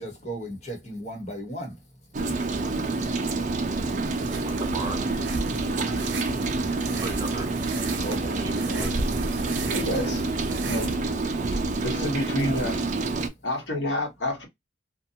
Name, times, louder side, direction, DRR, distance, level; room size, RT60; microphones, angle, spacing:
voice 1, 0.0-1.8 8.0-8.9, right 1 dB, 40° left, 1.0 m, -36 dB
Rain, 2.1-13.3, right 3 dB, 45° right, 0.5 m, -28 dB
sound 1, 2.1-2.4 3.1-3.3 3.8-3.9 5.7-5.9 6.2-6.3 6.9-7.0 7.2-7.3 7.7-7.9 8.4-8.9 9.4-9.9 10.5-10.6 10.8-11.1 11.5-11.6, right 5 dB, 65° right, 1.0 m, -39 dB
sound 2, 4.0-11.0, right 3 dB, 85° right, 0.6 m, -37 dB
voice 2, 4.4-5.0 5.8-6.5 6.8-7.5 8.3-9.0, right 2 dB, 25° right, 0.8 m, -37 dB
voice 3, 9.7-10.2 10.6-10.9 11.8-12.8 13.4-14.5, left 1 dB, 85° left, 1.1 m, -28 dB
2.6 x 2.2 x 2.7 m
head